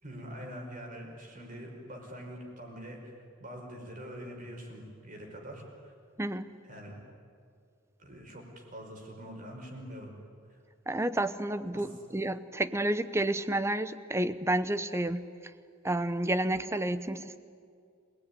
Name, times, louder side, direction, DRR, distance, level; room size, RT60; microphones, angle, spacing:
voice 1, 0.0-3.1 3.4-5.9 6.7-7.0 8.0-10.1 10.5-10.6 11.7-11.9, equal, 40° right, 1 dB, 5.2 m, -44 dB
voice 2, 6.2-6.5 10.9-15.3 15.8-17.4, right 1 dB, 15° right, 13 dB, 0.7 m, -30 dB
27.0 x 19.0 x 10.0 m, 2.3 s
head